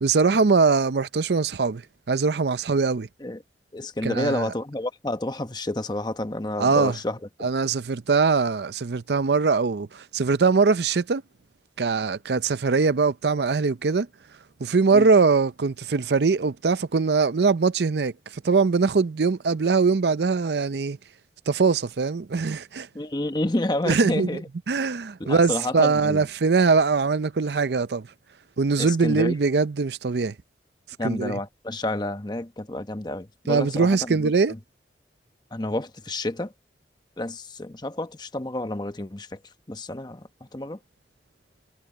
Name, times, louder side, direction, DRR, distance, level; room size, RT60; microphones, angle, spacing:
voice 1, 0.0-1.8 2.1-3.1 4.0-4.5 6.6-7.0 7.4-11.2 11.8-14.1 14.6-21.0 21.5-22.9 23.9-24.4 24.7-28.1 28.6-30.3 31.0-31.4 33.5-34.5, right 4 dB, 70° right, 0.6 m, -22 dB
voice 2, 3.7-7.2 14.9-15.1 22.9-24.5 25.2-26.3 28.8-29.3 31.0-34.3 35.5-36.5 37.2-39.4 39.7-40.8, left 1 dB, 25° left, 1.0 m, -29 dB
head